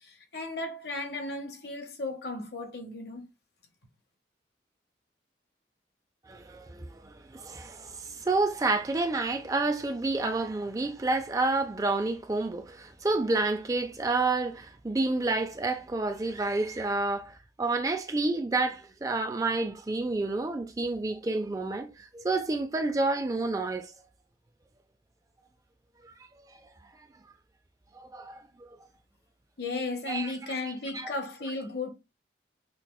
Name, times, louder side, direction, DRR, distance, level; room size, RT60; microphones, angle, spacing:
voice 1, 0.0-3.2 29.6-31.9, left 3 dB, 65° left, 0.9 m, -35 dB
voice 2, 6.3-23.9 27.9-28.4 30.1-30.3 30.9-31.1, right 3 dB, 20° right, 0.3 m, -29 dB
5.8 x 2.2 x 2.2 m
head